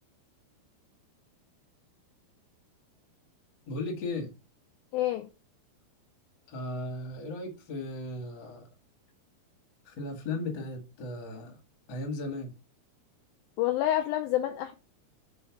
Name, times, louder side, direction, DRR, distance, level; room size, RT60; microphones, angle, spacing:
voice 1, 3.6-4.3 6.5-8.7 9.8-11.6 11.9-12.5, left 2 dB, 45° left, 1.6 m, -36 dB
voice 2, 4.9-5.3 13.6-14.7, left 13 dB, 85° left, 2.1 m, -28 dB
5.5 x 4.4 x 4.6 m
omnidirectional pair, 4.8 m